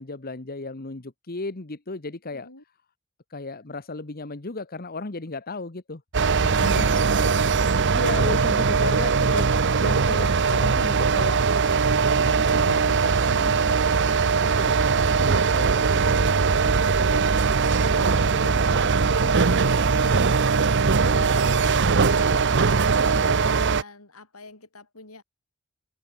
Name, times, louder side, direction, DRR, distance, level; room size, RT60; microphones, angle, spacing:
voice 1, 0.0-2.5 3.3-6.0 6.4-6.9 7.9-9.5 9.8-11.5 11.9-14.8 15.2-20.5, left 3 dB, 45° left, 1.3 m, -36 dB
voice 2, 2.3-2.6 6.7-7.5 7.9-8.4 8.8-8.9 21.1-22.6 23.0-25.2, left 2 dB, 85° left, 7.5 m, -44 dB
sound 1, 6.1-23.8, right 5 dB, 55° right, 0.8 m, -21 dB
head